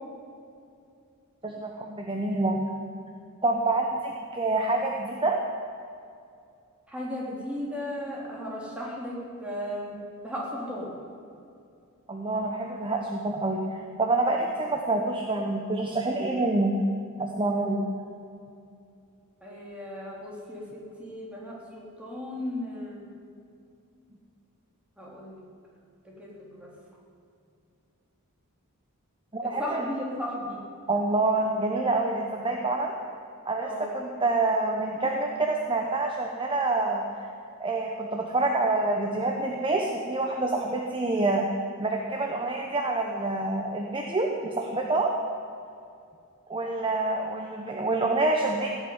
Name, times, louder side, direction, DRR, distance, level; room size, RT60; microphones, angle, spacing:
voice 1, 1.4-2.6 3.4-5.4 12.1-16.8 17.2-17.8 29.3-29.9 30.9-32.9 33.5-33.7 33.9-37.0 37.6-41.5 41.8-45.1 46.5-48.7, right 2 dB, 25° right, 1 dB, 1.0 m, -27 dB
voice 2, 6.9-10.0 10.2-10.9 19.4-23.1 25.0-25.4 26.2-26.7 29.4-30.6 33.6-33.9, left 1 dB, 5° right, -5 dB, 3.3 m, -35 dB
17.0 x 7.2 x 9.6 m, 2.5 s
head